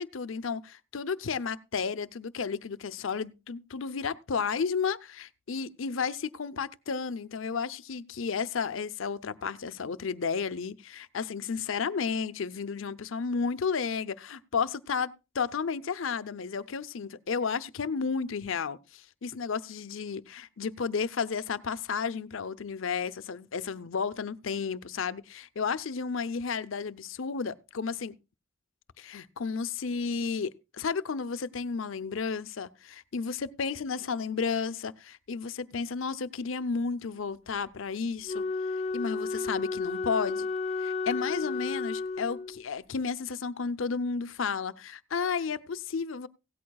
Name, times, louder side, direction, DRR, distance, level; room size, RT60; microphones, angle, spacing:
voice 1, 0.0-28.2 29.0-38.5 38.9-40.5 40.8-46.3, left 5 dB, 70° left, 0.6 m, -32 dB
Wind instrument woodwind instrument, 38.2-42.7, left 4 dB, 35° left, 0.7 m, -32 dB
16.5 x 13.0 x 2.3 m
head